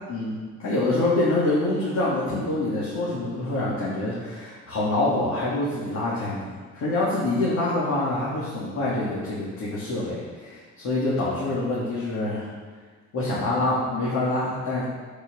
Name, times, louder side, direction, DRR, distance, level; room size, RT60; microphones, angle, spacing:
voice 1, 0.1-12.5 13.1-14.8, left 2 dB, 70° left, -8 dB, 3.2 m, -26 dB
8.7 x 8.6 x 5.7 m, 1.5 s
cardioid pair, 90°, 30 cm